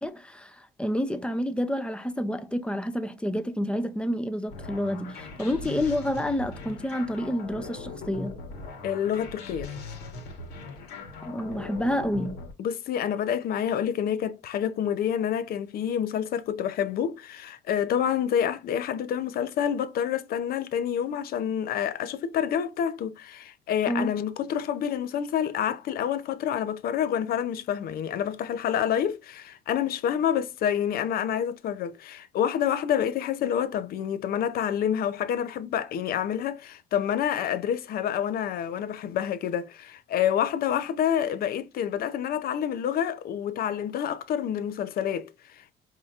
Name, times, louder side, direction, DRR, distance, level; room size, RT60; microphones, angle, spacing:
voice 1, 0.0-8.4 11.2-12.4 23.9-24.2, equal, 5° left, 0.6 m, -29 dB
sound 1, 4.5-12.5, left 3 dB, 80° left, 1.4 m, -40 dB
voice 2, 8.8-9.7 12.6-45.7, left 9 dB, 60° left, 0.6 m, -28 dB
4.9 x 2.8 x 2.4 m
cardioid pair, 110°, 17 cm